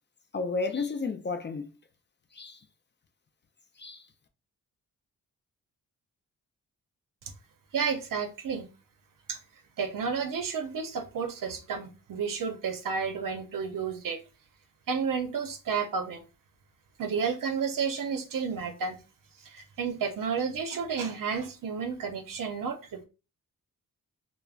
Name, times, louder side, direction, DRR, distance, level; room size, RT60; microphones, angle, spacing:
voice 1, 0.3-1.7 2.3-2.7 3.8-4.1, left 4 dB, 35° left, 0.4 m, -32 dB
voice 2, 7.7-8.7 9.3-9.4 9.8-14.2 14.9-16.2 17.0-19.0 19.4-23.0, right 6 dB, 70° right, 0.6 m, -31 dB
3.4 x 2.0 x 2.3 m
cardioid pair, 75°, 34 cm